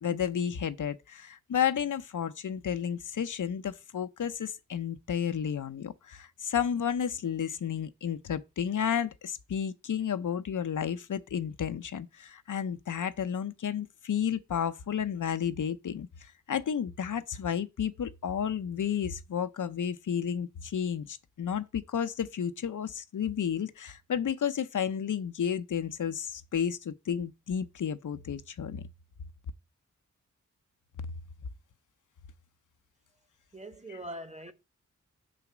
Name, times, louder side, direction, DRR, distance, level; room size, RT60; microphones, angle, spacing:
voice 1, 0.0-28.8 33.9-34.0, left 8 dB, 80° left, 0.6 m, -32 dB
voice 2, 33.5-34.5, right 1 dB, 20° right, 1.1 m, -42 dB
6.9 x 4.1 x 5.9 m
wide cardioid pair, 85°, 31 cm